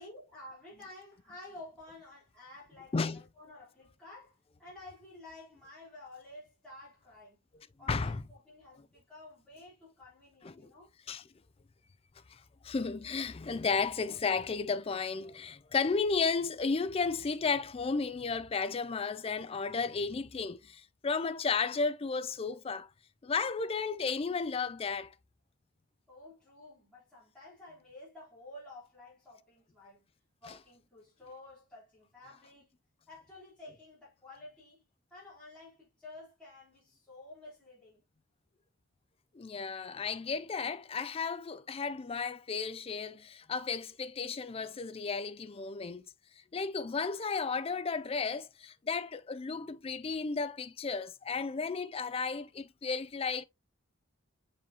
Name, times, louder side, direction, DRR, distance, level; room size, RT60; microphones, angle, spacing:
voice 1, 0.0-7.4 7.8-10.9 26.1-30.1 30.4-32.7 33.1-34.8 35.1-38.0, left 2 dB, 5° left, 3.5 m, -52 dB
voice 2, 7.9-8.2 10.4-10.7 11.1-11.2 12.3-22.9 23.2-25.1 30.5-30.6 39.3-46.1 46.5-53.4, left 4 dB, 25° left, 0.3 m, -33 dB
7.0 x 4.9 x 2.8 m
head